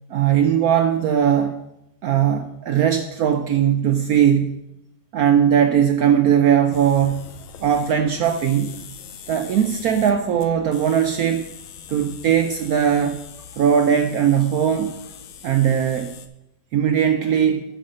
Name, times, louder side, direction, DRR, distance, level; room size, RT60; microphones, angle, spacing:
voice 1, 0.1-1.6 2.0-4.6 5.1-7.3 7.6-8.8 9.3-11.4 11.9-13.2 13.6-14.9 15.4-16.1 16.7-17.6, right 9 dB, 80° right, 7 dB, 0.8 m, -19 dB
sound 1, 6.7-16.3, left 7 dB, 70° left, 0.7 m, -42 dB
8.6 x 5.6 x 6.4 m, 0.87 s
omnidirectional pair, 2.1 m